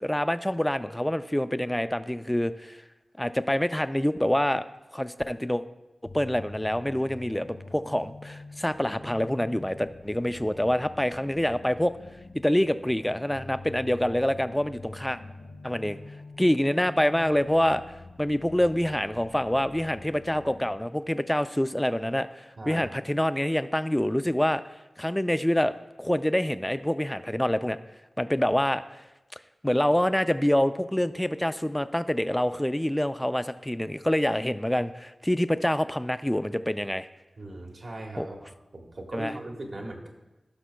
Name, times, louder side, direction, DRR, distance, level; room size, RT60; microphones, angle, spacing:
voice 1, 0.0-2.8 3.2-4.6 4.9-5.6 6.0-11.9 12.3-15.2 15.6-16.0 16.4-17.8 18.2-24.6 25.0-25.7 26.0-27.8 28.2-28.8 29.6-37.1 38.2-38.3 39.1-39.3, left 1 dB, 10° left, 12 dB, 0.4 m, -26 dB
sound 1, 6.1-20.7, left 3 dB, 60° left, 1.4 m, -46 dB
voice 2, 22.6-22.9 37.4-40.1, right 1 dB, 65° right, 1 dB, 1.4 m, -39 dB
15.5 x 6.0 x 2.3 m, 1.0 s
cardioid pair, 45°, 0 cm